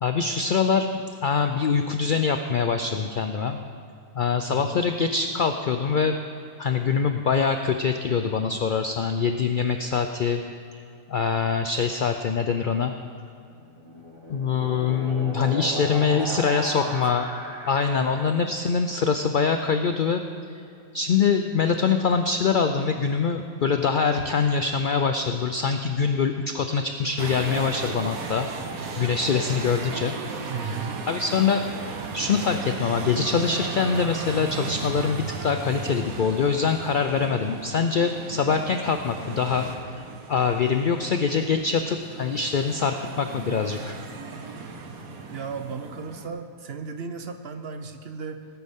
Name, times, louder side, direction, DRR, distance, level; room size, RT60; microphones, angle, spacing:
voice 1, 0.0-0.9 1.2-3.6 4.1-6.2 6.6-10.4 11.1-12.9 14.3-17.3 17.7-20.3 20.9-28.5 29.0-30.1 30.6-30.8 31.1-31.6 32.1-40.0 40.3-43.9, left 5 dB, 70° left, 7 dB, 0.4 m, -24 dB
voice 2, 4.5-4.9 15.6-16.4 16.7-17.0 18.0-18.2 30.4-31.0 45.3-48.5, right 5 dB, 55° right, 7 dB, 0.8 m, -35 dB
sound 1, 13.6-18.4, equal, 40° right, 1.9 m, -36 dB
sound 2, 27.2-46.3, right 4 dB, 85° right, 1.5 m, -36 dB
18.0 x 9.6 x 3.6 m, 2.6 s
omnidirectional pair, 1.5 m